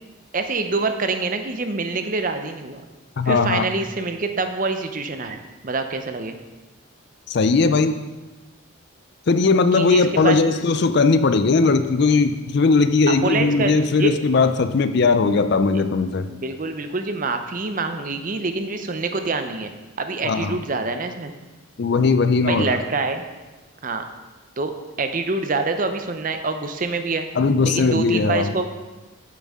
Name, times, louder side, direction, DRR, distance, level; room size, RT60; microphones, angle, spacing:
voice 1, 0.3-2.8 3.2-5.4 5.6-6.4 9.7-10.4 13.1-14.1 16.3-19.7 20.0-21.3 22.4-23.2 23.8-24.0 24.6-24.7 25.0-27.3 27.6-28.7, right 3 dB, 40° right, 7 dB, 0.6 m, -25 dB
voice 2, 3.2-3.6 7.3-8.0 9.3-16.3 20.2-20.6 21.8-22.8 27.4-28.5, left 4 dB, 50° left, 10 dB, 0.4 m, -18 dB
9.5 x 7.3 x 3.6 m, 1.2 s
head